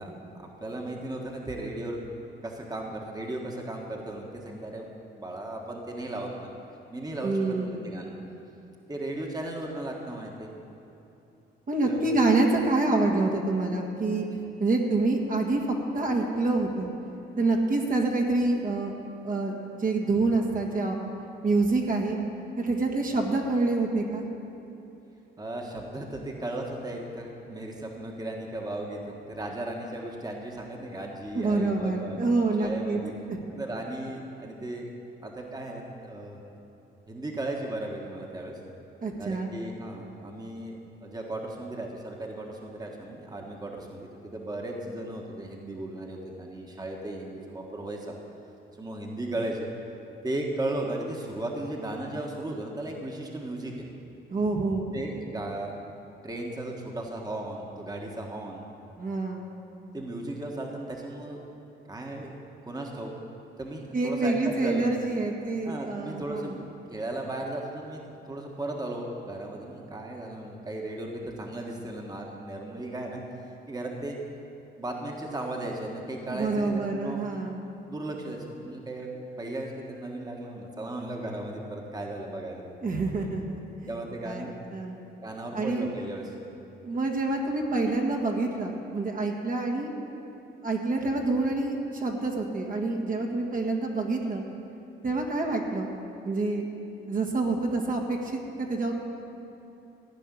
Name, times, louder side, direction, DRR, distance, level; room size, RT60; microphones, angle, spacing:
voice 1, 0.0-2.0 2.4-4.9 5.2-6.5 6.9-8.1 8.9-10.5 11.8-12.0 25.4-32.2 32.6-33.1 33.5-34.9 35.2-36.4 37.1-38.6 39.2-48.2 48.8-49.7 50.2-53.9 54.9-55.7 56.2-58.6 59.9-61.4 61.8-62.3 62.6-63.1 63.6-64.9 65.6-66.6 66.9-68.0 68.3-73.2 73.7-74.2 74.8-77.4 77.9-79.1 79.4-82.6 83.9-84.5 85.2-86.3, right 1 dB, 20° right, 0 dB, 1.6 m, -36 dB
voice 2, 7.2-7.9 11.7-14.2 14.6-16.9 17.4-18.9 19.2-19.5 19.8-20.9 21.4-22.2 22.6-24.3 31.3-33.0 33.3-33.4 39.0-39.5 54.3-54.9 59.0-59.5 63.9-66.6 76.3-77.6 82.8-83.6 84.2-84.5 84.7-85.0 85.5-85.9 86.8-89.9 90.6-94.4 95.0-95.9 96.2-96.7 97.1-98.9, right 3 dB, 45° right, 0 dB, 1.7 m, -27 dB
15.0 x 5.5 x 9.9 m, 2.9 s
cardioid pair, 90°, 20 cm